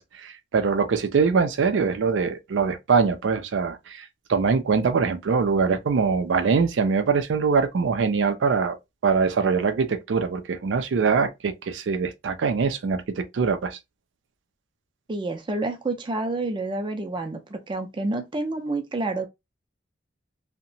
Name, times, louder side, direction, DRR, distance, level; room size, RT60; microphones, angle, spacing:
voice 1, 0.0-8.8 9.0-13.8, right 5 dB, 85° right, 0.4 m, -23 dB
voice 2, 15.1-19.3, right 2 dB, 25° right, 0.4 m, -29 dB
2.8 x 2.1 x 2.6 m
head